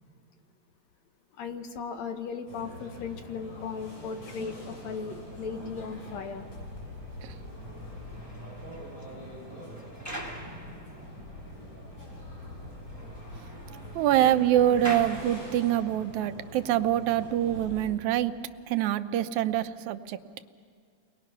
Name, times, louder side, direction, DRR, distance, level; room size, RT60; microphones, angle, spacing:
voice 1, 1.4-6.5, left 6 dB, 70° left, 6 dB, 2.5 m, -37 dB
sound 1, 2.5-17.9, equal, 50° left, 7.8 m, -43 dB
sound 2, 7.9-11.4 11.9-12.0 12.4-12.5 12.8-16.0, right 1 dB, 10° left, 0.9 m, -44 dB
voice 2, 14.0-18.3 18.7-20.2, right 12 dB, 85° right, 11 dB, 2.1 m, -25 dB
30.0 x 21.5 x 5.9 m, 2.2 s
omnidirectional pair, 3.3 m